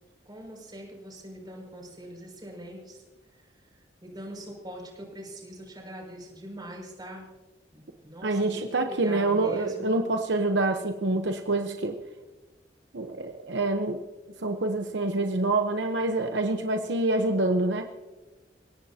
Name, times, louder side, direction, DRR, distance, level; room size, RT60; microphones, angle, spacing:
voice 1, 0.2-3.0 4.0-7.3 7.7-10.0, equal, 25° right, -1 dB, 6.4 m, -42 dB
voice 2, 8.2-12.0 12.9-14.0 14.4-17.8, right 2 dB, 75° right, 5 dB, 1.0 m, -26 dB
29.0 x 17.0 x 2.9 m, 1.2 s
head